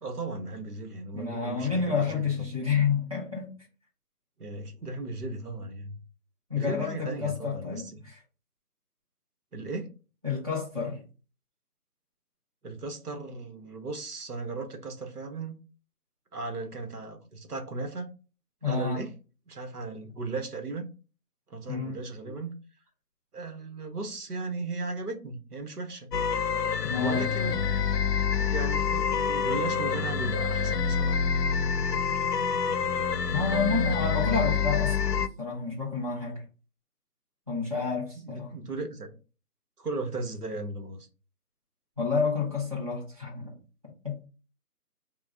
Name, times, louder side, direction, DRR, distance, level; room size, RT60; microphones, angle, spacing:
voice 1, 0.0-2.3 4.4-6.0 6.6-8.0 9.5-9.9 12.6-15.6 16.3-18.1 18.6-19.1 19.5-20.9 21.5-22.5 23.3-26.1 27.0-28.0 28.4-31.2 38.1-39.1 39.8-41.1, right 3 dB, 70° right, 1.1 m, -36 dB
voice 2, 1.1-3.5 6.5-8.2 10.2-11.0 18.6-19.0 21.7-22.0 26.8-27.3 33.3-36.4 37.5-38.5 42.0-43.6 44.0-44.2, left 5 dB, 25° right, 0.9 m, -29 dB
sound 1, 26.1-35.3, left 6 dB, 90° left, 0.6 m, -27 dB
5.5 x 2.3 x 2.7 m
figure-of-eight pair, 175°, 47 cm